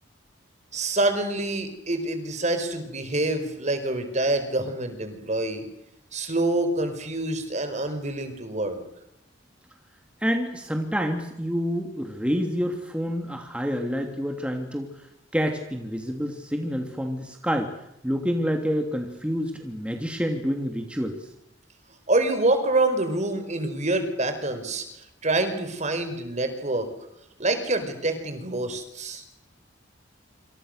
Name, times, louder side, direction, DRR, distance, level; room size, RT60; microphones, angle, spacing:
voice 1, 0.7-5.6 6.1-8.8 22.1-24.8 25.2-26.9 27.4-29.2, right 2 dB, 40° right, 8 dB, 4.8 m, -26 dB
voice 2, 10.2-14.9 15.3-17.7 18.0-21.1, equal, 5° right, 3 dB, 2.8 m, -28 dB
27.5 x 27.5 x 6.7 m, 0.81 s
head